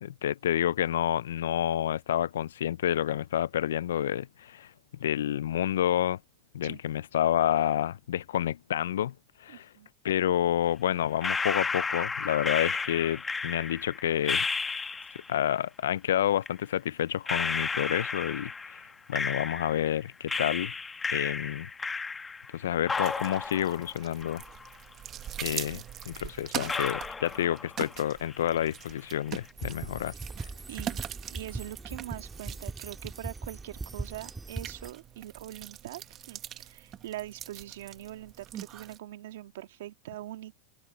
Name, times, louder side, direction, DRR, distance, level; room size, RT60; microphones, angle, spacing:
voice 1, 0.0-4.7 5.0-6.2 6.5-9.1 9.4-9.7 10.0-14.4 15.3-18.8 19.1-20.7 21.1-21.7 22.5-24.4 25.4-25.8 26.1-30.1 30.4-30.5, left 11 dB, 85° left, 0.4 m, -29 dB
voice 2, 9.5-9.9 25.5-25.8 30.7-40.6, right 14 dB, 80° right, 1.8 m, -43 dB
sound 1, 11.2-15.3 16.4-16.5 17.3-19.9 20.3-22.6 22.9-24.9 25.2-25.3 26.0-26.1 26.7-28.0 28.3-28.8, left 4 dB, 15° left, 1.1 m, -33 dB
sound 2, 22.9-39.0, right 11 dB, 40° right, 1.2 m, -43 dB
sound 3, 29.6-34.9, right 3 dB, 10° right, 2.4 m, -40 dB
open air
hypercardioid pair, 110°, 0 cm